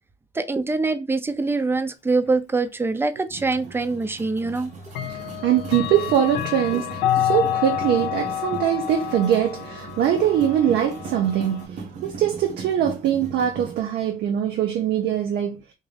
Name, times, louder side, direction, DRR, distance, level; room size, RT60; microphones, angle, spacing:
voice 1, 0.3-4.7 6.7-6.8, right 3 dB, 15° right, 0.6 m, -24 dB
sound 1, 3.3-13.8, right 3 dB, 45° right, 0.9 m, -39 dB
Clock, 3.5-3.6 4.9-11.7, left 11 dB, 85° left, 0.5 m, -28 dB
voice 2, 5.0-15.6, right 10 dB, 75° right, 0.7 m, -22 dB
3.6 x 2.6 x 3.3 m
cardioid pair, 110°, 17 cm